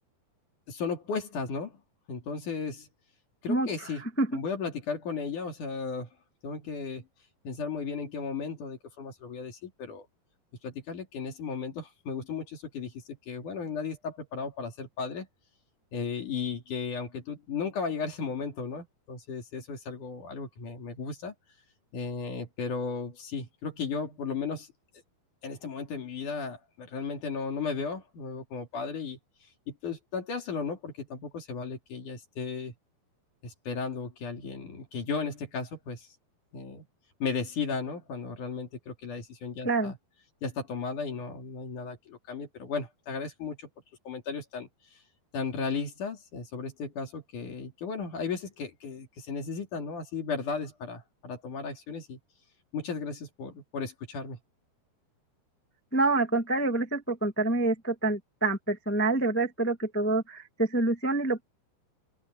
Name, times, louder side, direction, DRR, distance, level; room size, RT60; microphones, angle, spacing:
voice 1, 0.7-1.8 2.1-2.9 3.4-4.0 4.3-6.1 6.4-7.0 7.4-10.1 10.6-15.3 15.9-21.3 21.9-24.7 25.4-29.2 29.7-32.7 33.4-36.1 36.5-36.9 37.2-40.0 40.4-43.7 44.1-44.7 45.3-52.2 52.7-54.4, left 5 dB, 55° left, 3.9 m, -35 dB
voice 2, 55.9-61.4, right 2 dB, 15° left, 0.5 m, -27 dB
open air
omnidirectional pair, 4.7 m